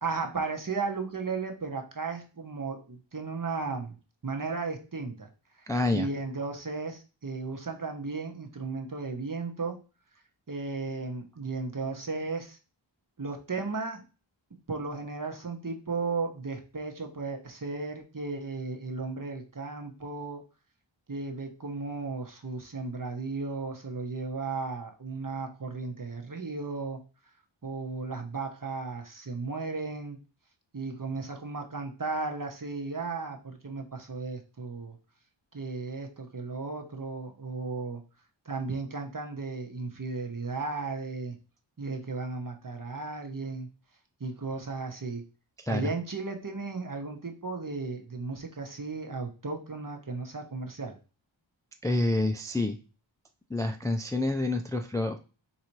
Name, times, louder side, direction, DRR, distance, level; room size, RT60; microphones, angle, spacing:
voice 1, 0.0-4.0 4.2-5.3 5.6-9.8 10.5-12.6 13.2-14.0 14.7-20.4 21.1-27.0 27.6-30.2 30.7-35.0 35.5-38.0 38.4-41.3 41.8-43.7 44.2-45.2 45.7-51.0, right 4 dB, 40° right, 3 dB, 0.9 m, -35 dB
voice 2, 5.7-6.1 45.6-45.9 51.8-52.8 53.5-55.2, left 2 dB, 10° left, 6 dB, 0.4 m, -28 dB
4.0 x 2.8 x 4.5 m, 0.33 s
wide cardioid pair, 45°, 48 cm